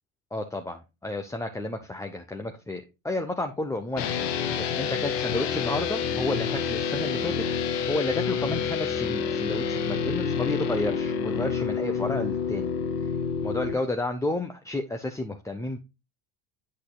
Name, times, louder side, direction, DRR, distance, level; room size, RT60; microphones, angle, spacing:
voice 1, 0.3-7.4 7.9-12.7 13.0-13.1 13.4-15.8, left 2 dB, 5° left, 0.6 m, -31 dB
sound 1, 4.0-13.7, left 6 dB, 60° left, 1.2 m, -28 dB
8.1 x 6.5 x 2.3 m
supercardioid pair, 95°, 47 cm